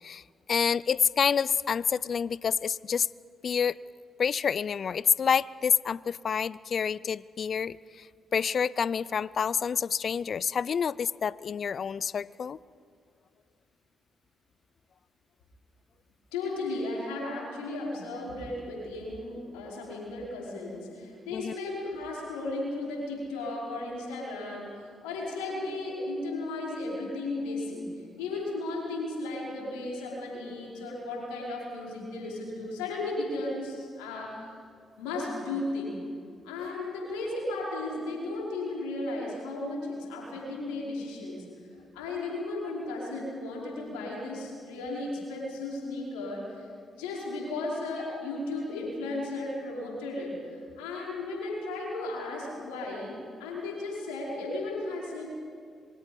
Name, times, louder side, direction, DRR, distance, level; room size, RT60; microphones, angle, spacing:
voice 1, 0.5-3.1 3.4-3.8 4.2-8.1 8.3-12.6 21.3-21.6, left 7 dB, 55° left, 21 dB, 0.5 m, -28 dB
voice 2, 16.3-27.9 28.2-34.5 35.0-36.0 36.4-41.5 41.9-46.6 47.0-55.3, left 2 dB, 85° left, -3 dB, 5.3 m, -35 dB
26.5 x 23.5 x 5.4 m, 2.3 s
hypercardioid pair, 45°, 0 cm